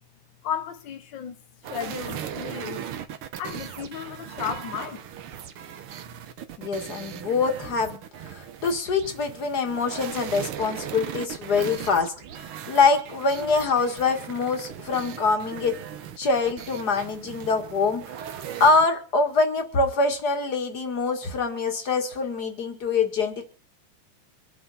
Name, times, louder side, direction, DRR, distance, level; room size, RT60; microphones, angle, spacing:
voice 1, 0.4-2.8 3.4-5.0, left 8 dB, 80° left, 1.0 m, -34 dB
sound 1, 1.6-18.9, right 9 dB, 60° right, 1.5 m, -38 dB
voice 2, 6.6-8.0 8.3-12.1 12.7-15.7 16.2-18.0 18.3-23.4, left 4 dB, 35° left, 2.1 m, -24 dB
24.5 x 9.6 x 4.2 m
omnidirectional pair, 3.4 m